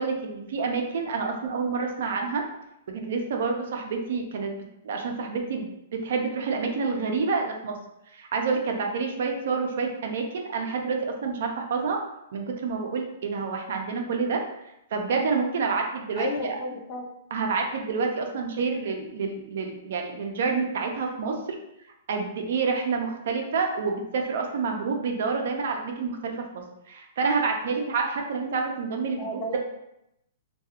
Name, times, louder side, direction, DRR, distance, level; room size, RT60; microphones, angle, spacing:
voice 1, 0.0-2.4 2.9-4.5 4.8-7.8 8.1-12.0 12.3-14.4 14.9-16.6 17.3-21.4 22.1-29.6, right 4 dB, 65° right, 3 dB, 0.4 m, -28 dB
voice 2, 16.2-17.1 29.2-29.6, left 1 dB, 25° left, 0 dB, 0.4 m, -33 dB
2.3 x 2.3 x 2.8 m, 0.83 s
hypercardioid pair, 155°, 0 cm